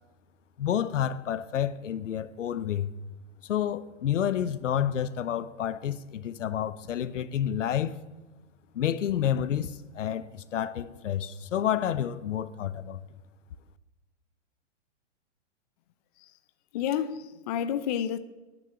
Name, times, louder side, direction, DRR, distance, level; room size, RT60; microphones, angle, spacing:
voice 1, 0.6-2.9 3.5-8.0 8.7-13.0, left 10 dB, 80° left, 0.8 m, -29 dB
voice 2, 16.7-18.2, left 9 dB, 35° left, 0.5 m, -30 dB
10.0 x 6.9 x 8.9 m
hypercardioid pair, 140°, 37 cm